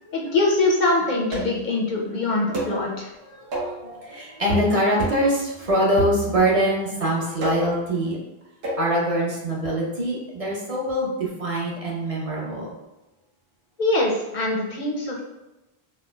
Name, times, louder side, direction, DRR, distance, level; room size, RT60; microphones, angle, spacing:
voice 1, 0.1-3.1 13.8-15.2, left 2 dB, 60° left, -1 dB, 0.6 m, -23 dB
sound 1, 1.3-1.7 2.5-2.8 3.5-3.8 4.5-4.7 5.0-5.3 6.0-6.6 7.4-7.8 8.6-8.9, equal, 75° right, 1.1 m, -28 dB
voice 2, 3.3-8.2 8.8-12.7, right 1 dB, 40° right, -4 dB, 0.7 m, -24 dB
4.3 x 2.1 x 2.2 m, 1.0 s
omnidirectional pair, 1.0 m